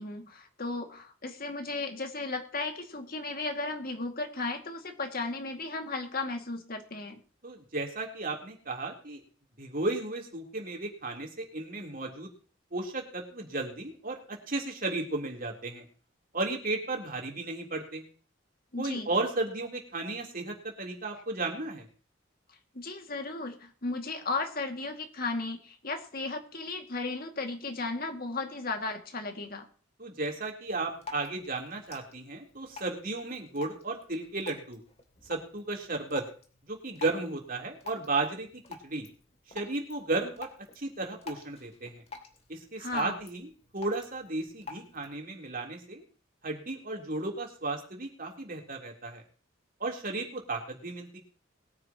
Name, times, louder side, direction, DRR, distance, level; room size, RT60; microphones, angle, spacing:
voice 1, 0.0-7.2 18.7-19.1 22.7-29.7 42.8-43.2, left 3 dB, 50° left, 5 dB, 2.3 m, -35 dB
voice 2, 7.4-9.2 9.6-12.3 12.7-15.8 16.3-18.0 18.8-21.9 30.0-34.8 35.3-36.2 36.7-38.5 38.8-39.1 39.5-40.5 40.8-42.0 42.5-46.0 46.4-49.2 49.8-51.2, right 2 dB, 45° right, 1 dB, 3.6 m, -34 dB
Drip, 30.7-45.2, left 4 dB, 35° left, 2.7 m, -49 dB
22.0 x 9.8 x 3.0 m, 0.40 s
head